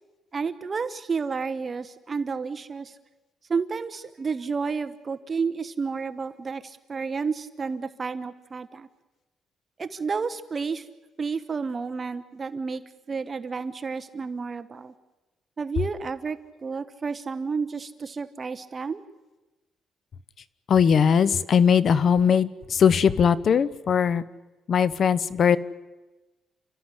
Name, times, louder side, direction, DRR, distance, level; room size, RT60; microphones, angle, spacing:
voice 1, 0.3-2.9 3.5-8.9 9.8-10.9 11.2-12.8 13.1-14.9 15.6-19.0, right 5 dB, 35° right, 11 dB, 1.1 m, -31 dB
voice 2, 20.7-24.2 24.7-25.6, left 7 dB, 55° left, 18 dB, 1.0 m, -20 dB
30.0 x 13.5 x 9.9 m, 1.2 s
cardioid pair, 90°, 0 cm